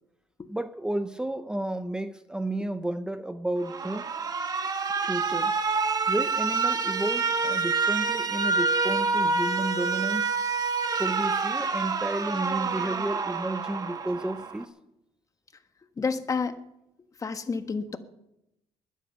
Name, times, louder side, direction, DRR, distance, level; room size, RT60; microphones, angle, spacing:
voice 1, 0.5-4.1 5.0-5.6 6.1-10.4 11.0-14.7, right 1 dB, 5° right, 10 dB, 0.8 m, -32 dB
Alarm, 3.6-14.6, right 4 dB, 40° right, 1.5 m, -27 dB
voice 2, 16.0-16.6 17.2-18.0, left 5 dB, 30° left, 9 dB, 1.4 m, -29 dB
21.0 x 12.0 x 5.7 m, 0.88 s
cardioid pair, 100°, 11 cm